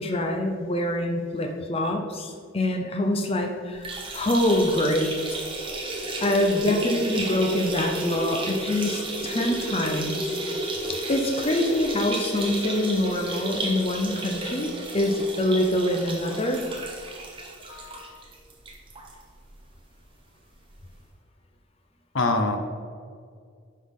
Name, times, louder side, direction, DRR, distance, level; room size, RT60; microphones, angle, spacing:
voice 1, 0.0-5.4 6.2-10.4 10.9-16.6, left 1 dB, 30° left, 2 dB, 0.6 m, -25 dB
sound 1, 3.7-19.1 19.5-19.6 19.9-20.0 21.0-21.1, right 1 dB, 25° right, 1.1 m, -32 dB
voice 2, 17.7-18.2 22.1-22.6, left 2 dB, 70° left, 5 dB, 0.8 m, -26 dB
10.5 x 5.6 x 3.7 m, 2.2 s
head